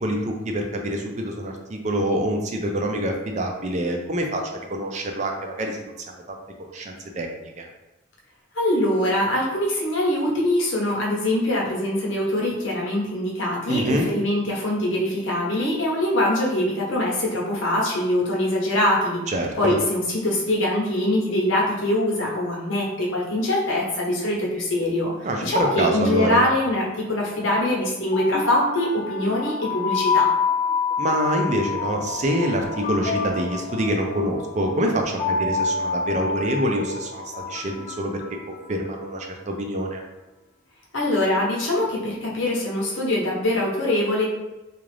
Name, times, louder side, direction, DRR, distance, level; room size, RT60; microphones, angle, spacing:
voice 1, 0.0-4.4 4.7-7.7 13.7-14.1 19.3-19.8 25.2-26.4 31.0-38.2 38.5-40.0, right 1 dB, 35° right, 2 dB, 0.4 m, -26 dB
voice 2, 8.5-19.2 19.6-25.1 25.4-30.3 40.9-44.2, left 1 dB, 80° left, -3 dB, 1.0 m, -23 dB
sound 1, 27.9-39.0, left 5 dB, 35° left, 0.3 m, -28 dB
3.6 x 2.4 x 3.3 m, 1.0 s
head